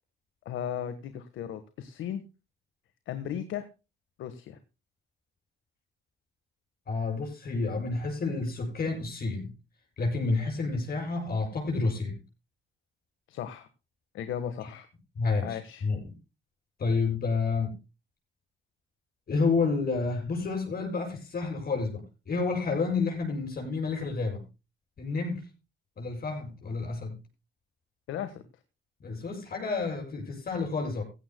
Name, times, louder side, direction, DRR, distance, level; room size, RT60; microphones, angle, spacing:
voice 1, 0.4-2.2 3.1-3.7 4.2-4.6 13.3-13.7 14.1-14.9 15.4-15.9 28.1-28.4, left 9 dB, 80° left, 10 dB, 1.4 m, -36 dB
voice 2, 6.9-9.5 10.0-12.2 15.2-16.1 16.8-17.7 19.3-24.4 25.0-25.5 26.0-27.2 29.0-31.0, left 4 dB, 50° left, 1 dB, 7.7 m, -30 dB
16.5 x 15.5 x 2.2 m, 0.29 s
cardioid pair, 90°, 20 cm